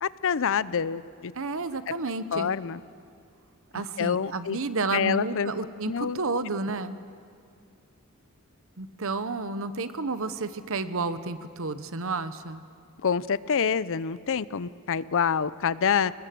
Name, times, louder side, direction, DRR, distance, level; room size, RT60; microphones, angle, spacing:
voice 1, 0.0-1.3 2.3-2.8 4.0-4.6 4.9-5.5 5.9-6.2 13.0-16.1, left 6 dB, 60° left, 17 dB, 0.6 m, -26 dB
voice 2, 1.3-2.5 3.7-7.0 8.8-12.6, right 3 dB, 65° right, 12 dB, 1.1 m, -31 dB
29.5 x 20.0 x 7.7 m, 2.3 s
head